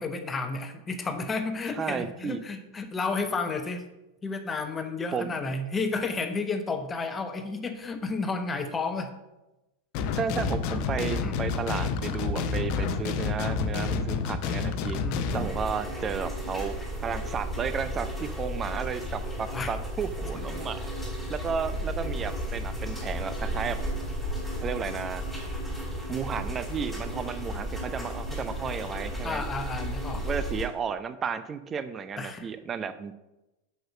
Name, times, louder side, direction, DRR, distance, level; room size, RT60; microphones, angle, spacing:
voice 1, 0.0-3.9 4.2-9.1 11.2-11.3 15.0-15.3 19.5-19.7 20.5-20.6 29.2-30.3 32.2-32.5, left 4 dB, 15° left, 7 dB, 0.9 m, -32 dB
voice 2, 1.7-2.4 5.1-5.3 10.1-15.0 15.3-20.8 21.3-23.8 24.6-25.2 26.1-29.4 30.2-33.1, right 6 dB, 25° right, 12 dB, 0.5 m, -33 dB
sound 1, 9.9-15.5, left 5 dB, 45° left, 0.8 m, -29 dB
sound 2, 15.3-30.7, equal, ahead, 3.2 m, -34 dB
7.8 x 5.8 x 6.4 m, 1.0 s
figure-of-eight pair, 90°, 0 cm